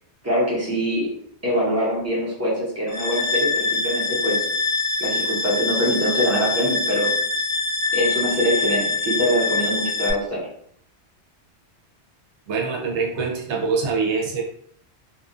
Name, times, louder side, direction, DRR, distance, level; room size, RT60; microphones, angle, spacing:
voice 1, 0.2-1.1 1.4-4.5 5.0-7.1 7.9-10.5, equal, 15° right, -6 dB, 0.8 m, -24 dB
sound 1, 2.9-10.1, left 3 dB, 50° left, 0.5 m, -24 dB
voice 2, 12.5-14.4, right 4 dB, 85° right, -1 dB, 0.9 m, -24 dB
2.6 x 2.4 x 2.4 m, 0.65 s
omnidirectional pair, 1.1 m